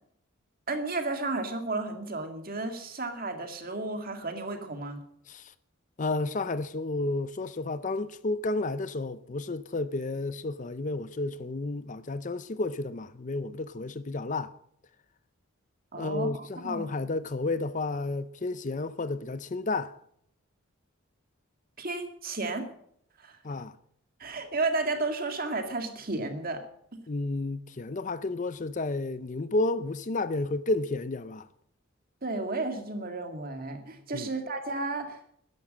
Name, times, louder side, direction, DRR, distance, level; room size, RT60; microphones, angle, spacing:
voice 1, 0.7-5.0 15.9-16.9 21.8-22.7 23.2-23.4 24.2-26.6 32.2-35.2, right 3 dB, 45° right, 2.1 m, -33 dB
voice 2, 6.0-14.5 16.0-20.0 23.4-23.7 27.1-31.5 34.1-34.3, left 2 dB, 35° left, 0.5 m, -31 dB
13.0 x 11.0 x 7.5 m
head